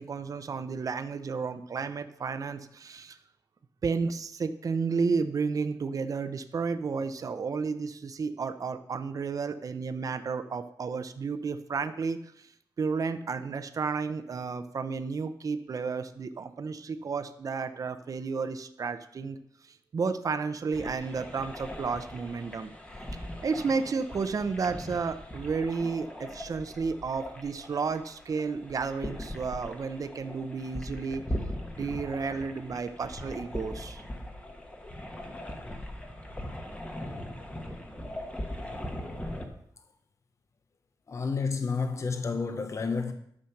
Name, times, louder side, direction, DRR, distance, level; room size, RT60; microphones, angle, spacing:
voice 1, 0.0-3.2 3.8-12.2 12.8-19.4 19.9-22.7 23.1-31.2 31.8-34.0, right 5 dB, 50° right, 0.7 m, -32 dB
sound 1, 20.7-39.5, left 1 dB, 15° left, 1.3 m, -40 dB
voice 2, 41.1-43.1, left 4 dB, 40° left, 0.8 m, -30 dB
11.5 x 7.4 x 5.9 m
wide cardioid pair, 175°, 8 cm